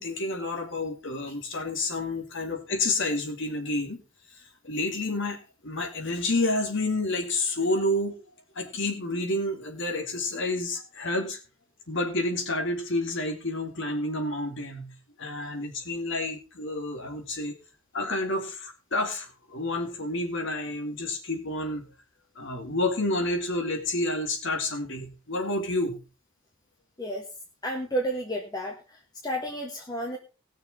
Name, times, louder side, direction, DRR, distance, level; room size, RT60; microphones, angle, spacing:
voice 1, 0.0-4.0 4.6-8.2 8.6-11.4 11.9-14.9 15.2-17.5 17.9-21.9 22.4-26.0, left 2 dB, 60° left, 3 dB, 2.4 m, -29 dB
voice 2, 27.6-30.2, right 1 dB, 20° left, 0 dB, 1.4 m, -32 dB
19.0 x 6.6 x 4.1 m, 0.32 s
head